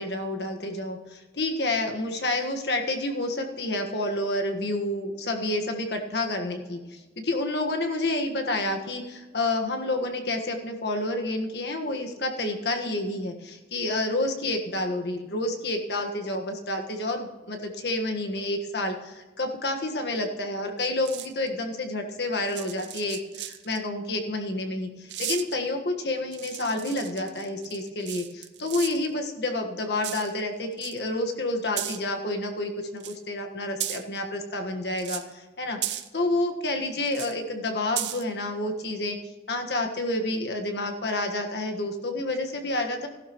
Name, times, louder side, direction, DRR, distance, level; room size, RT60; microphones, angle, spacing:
voice 1, 0.0-39.2 39.5-43.1, left 2 dB, 75° left, 3 dB, 1.5 m, -29 dB
sound 1, 21.1-21.5 22.5-23.8 25.1-25.6 26.3-29.1 30.0-30.4 30.7-31.0 31.8-32.0 33.0-33.2 33.8-34.2 35.0-35.3 35.8-36.1 37.0-37.3 38.0-38.2, right 12 dB, 90° right, 0.7 m, -35 dB
15.5 x 12.0 x 3.1 m, 1.2 s
head